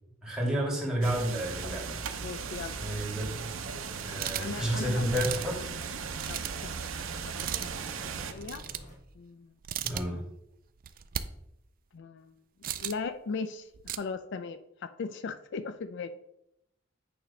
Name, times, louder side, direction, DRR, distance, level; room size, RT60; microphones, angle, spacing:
voice 1, 0.2-2.0 2.8-3.3 4.0-5.7 9.8-10.2, right 1 dB, 5° right, -4 dB, 2.0 m, -30 dB
sound 1, 1.0-9.0, equal, 35° left, 1.3 m, -51 dB
sound 2, 1.0-8.3, right 6 dB, 85° right, 0.7 m, -37 dB
voice 2, 2.2-2.8 4.4-5.0 6.3-6.9 7.2-7.3 7.6-7.9 8.3-8.6 9.2-9.5 11.9-12.3 12.8-16.2, left 4 dB, 60° left, 10 dB, 0.4 m, -38 dB
sound 3, 4.2-4.6 5.1-5.6 6.1-6.6 7.3-7.7 8.4-8.9 9.6-10.0 10.8-11.2 12.6-13.1 13.7-14.0, right 10 dB, 45° right, 0.4 m, -36 dB
8.6 x 3.1 x 5.4 m, 0.80 s
head